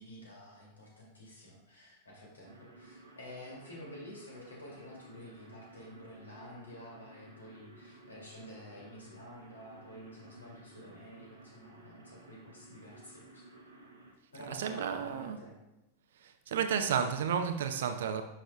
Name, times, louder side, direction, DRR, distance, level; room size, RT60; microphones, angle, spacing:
voice 1, 0.0-13.4 14.3-15.6, left 1 dB, 75° left, -2 dB, 2.4 m, -50 dB
sound 1, 2.4-14.1, right 2 dB, 75° right, 1.0 m, -55 dB
voice 2, 14.3-15.4 16.2-18.2, right 7 dB, 60° right, 8 dB, 0.6 m, -32 dB
9.7 x 6.3 x 2.3 m, 0.96 s
figure-of-eight pair, 90°, 0 cm